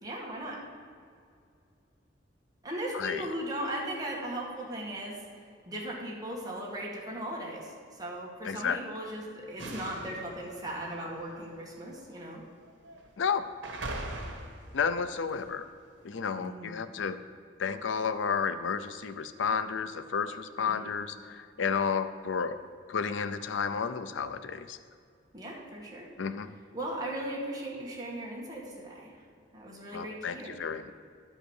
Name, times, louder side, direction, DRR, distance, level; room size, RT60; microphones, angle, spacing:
voice 1, 0.0-0.6 2.6-5.2 5.7-12.4 16.4-16.8 20.6-20.9 25.3-26.1 26.7-29.2 29.5-30.5, right 1 dB, 20° right, -4 dB, 2.1 m, -38 dB
voice 2, 8.4-8.8 13.2-13.4 14.7-15.7 16.0-17.2 17.6-22.6 22.9-24.8 26.2-26.5 29.9-30.9, left 6 dB, 75° left, 12 dB, 0.5 m, -31 dB
sound 1, 9.6-12.0 12.6-13.1 13.6-15.5, right 2 dB, 80° right, 1.5 m, -42 dB
11.5 x 5.4 x 6.4 m, 2.3 s
head